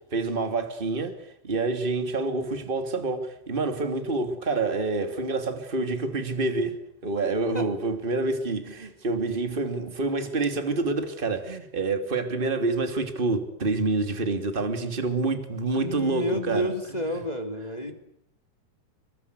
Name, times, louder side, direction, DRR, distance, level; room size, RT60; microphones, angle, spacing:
voice 1, 0.1-16.7, right 3 dB, 15° right, 2.4 m, -27 dB
voice 2, 15.7-17.9, equal, 10° left, 2.3 m, -30 dB
26.5 x 24.0 x 8.3 m
omnidirectional pair, 4.5 m